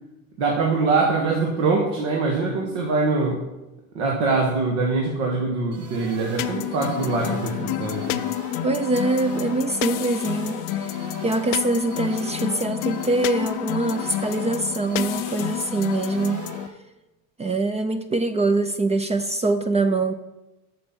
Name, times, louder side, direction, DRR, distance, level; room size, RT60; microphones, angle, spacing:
voice 1, 0.4-3.4 3.9-8.2, right 3 dB, 70° right, -1 dB, 1.9 m, -23 dB
sound 1, 5.7-16.7, right 2 dB, 45° right, 2.3 m, -40 dB
sound 2, 6.4-16.7, left 13 dB, 50° left, 0.6 m, -29 dB
voice 2, 8.6-16.4 17.4-20.1, right 2 dB, 15° right, 10 dB, 0.4 m, -24 dB
7.8 x 6.4 x 6.1 m, 1.0 s
supercardioid pair, 105°, 42 cm